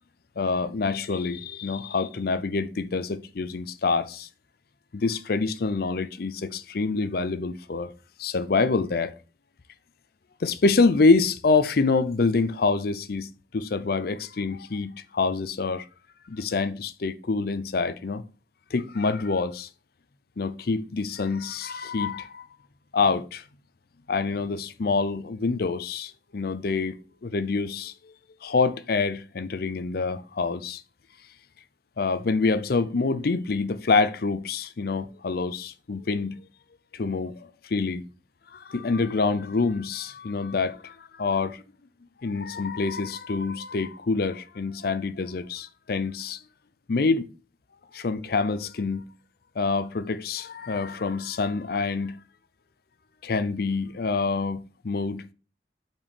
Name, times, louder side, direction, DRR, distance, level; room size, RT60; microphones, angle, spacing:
voice 1, 0.4-4.3 4.9-7.9 8.2-9.1 10.4-15.9 16.3-18.2 18.7-19.7 20.4-22.5 22.9-23.4 24.1-27.9 28.4-30.8 32.0-36.4 36.9-38.1 38.5-41.6 42.2-46.4 46.9-47.3 47.9-49.0 49.6-52.2 53.2-55.3, left 4 dB, 55° left, 0.5 m, -26 dB
5.7 x 4.4 x 5.2 m
head